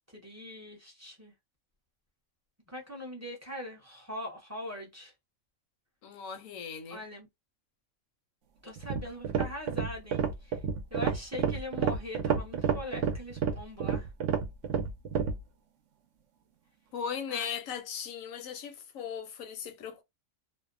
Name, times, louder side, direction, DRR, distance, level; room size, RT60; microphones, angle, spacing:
voice 1, 0.1-1.3 2.7-5.1 6.9-7.3 8.6-10.6 10.9-14.1 17.3-17.6, left 1 dB, 15° right, 0.6 m, -41 dB
voice 2, 6.0-7.0 16.9-20.0, left 7 dB, 80° left, 1.1 m, -38 dB
sound 1, 8.8-15.4, right 7 dB, 70° right, 0.9 m, -30 dB
2.6 x 2.1 x 2.4 m
omnidirectional pair, 1.4 m